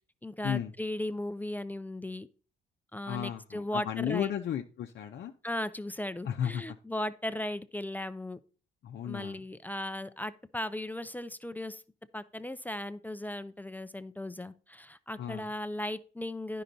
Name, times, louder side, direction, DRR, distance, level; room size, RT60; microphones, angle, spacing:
voice 1, 0.2-2.3 2.9-4.3 5.4-8.4 9.0-11.8 12.1-16.6, left 1 dB, 10° left, 13 dB, 0.5 m, -37 dB
voice 2, 3.1-5.3 6.2-6.8 8.8-9.4 15.2-15.5, left 9 dB, 60° left, 3 dB, 0.7 m, -34 dB
10.0 x 5.6 x 3.9 m, 0.39 s
cardioid pair, 90°, 20 cm